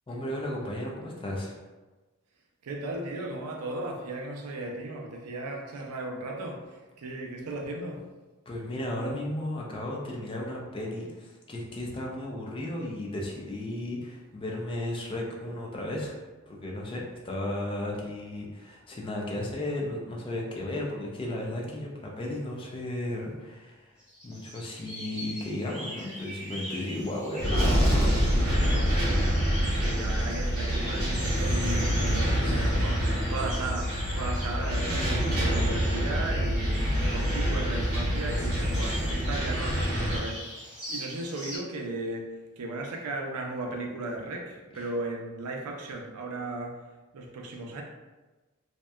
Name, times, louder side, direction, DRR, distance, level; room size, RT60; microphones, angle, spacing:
voice 1, 0.1-1.6 8.5-16.1 16.5-24.0 24.2-28.3 32.4-32.9 44.7-44.9, left 1 dB, 25° left, -2 dB, 0.4 m, -34 dB
voice 2, 2.6-8.0 29.7-33.0 33.3-40.4 40.9-46.8 47.1-47.8, right 2 dB, 85° right, 1 dB, 0.4 m, -36 dB
sound 1, 24.0-41.6, equal, 5° right, 0.9 m, -41 dB
sound 2, 27.4-40.2, equal, 45° right, 0.8 m, -26 dB
2.7 x 2.1 x 2.2 m, 1.2 s
head